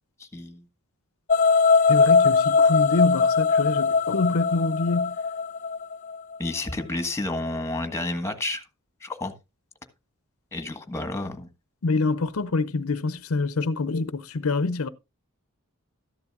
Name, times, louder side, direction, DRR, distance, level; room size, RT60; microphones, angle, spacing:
voice 1, 0.2-0.6 6.4-8.6 9.0-9.3 10.5-11.5, left 2 dB, 10° left, 1.4 m, -30 dB
sound 1, 1.3-6.4, left 4 dB, 35° left, 0.6 m, -20 dB
voice 2, 1.9-5.2 11.8-14.9, left 3 dB, 75° left, 0.7 m, -26 dB
13.5 x 11.0 x 2.4 m
head